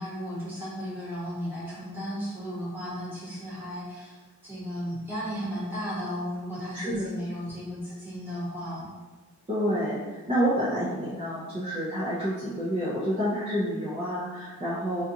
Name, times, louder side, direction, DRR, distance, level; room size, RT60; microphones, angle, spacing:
voice 1, 0.0-4.2 4.4-8.9, equal, 10° right, -10 dB, 1.1 m, -35 dB
voice 2, 6.7-7.1 9.5-15.0, equal, 25° right, -9 dB, 0.5 m, -28 dB
3.9 x 2.4 x 2.7 m, 1.3 s
head